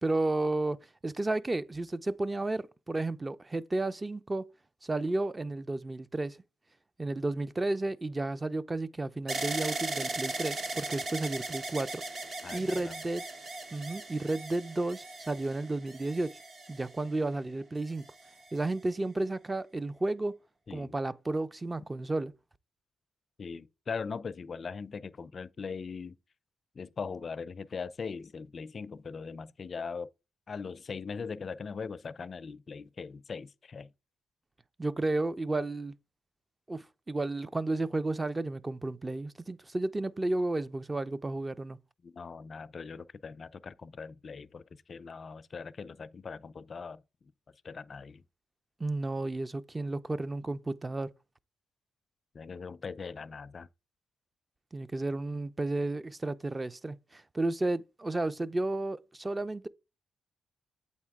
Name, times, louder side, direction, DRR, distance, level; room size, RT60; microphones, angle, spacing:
voice 1, 0.0-4.5 4.8-6.4 7.0-12.0 12.5-13.2 13.7-16.4 16.7-18.0 18.5-20.4 20.7-22.3 34.8-35.9 36.7-41.8 48.8-51.1 54.7-59.7, right 2 dB, 20° right, 0.4 m, -32 dB
sound 1, 9.3-17.3 18.0-18.7, right 2 dB, 55° right, 0.9 m, -38 dB
voice 2, 12.4-12.9 20.7-20.9 23.4-26.2 26.7-30.1 30.5-33.9 42.0-47.0 47.6-48.2 52.3-53.7, left 5 dB, 45° left, 0.4 m, -40 dB
8.2 x 4.2 x 3.6 m
cardioid pair, 75°, 0 cm